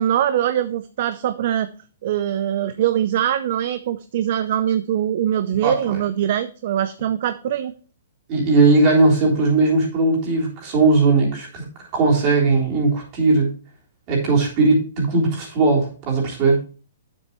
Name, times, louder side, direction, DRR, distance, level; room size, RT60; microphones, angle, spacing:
voice 1, 0.0-1.7 2.0-7.7, right 10 dB, 45° right, 12 dB, 0.5 m, -22 dB
voice 2, 5.6-6.0 8.3-11.7 11.9-13.5 14.1-16.6, right 3 dB, 30° right, -2 dB, 3.4 m, -18 dB
8.5 x 7.6 x 3.0 m, 0.39 s
hypercardioid pair, 160°, 0 cm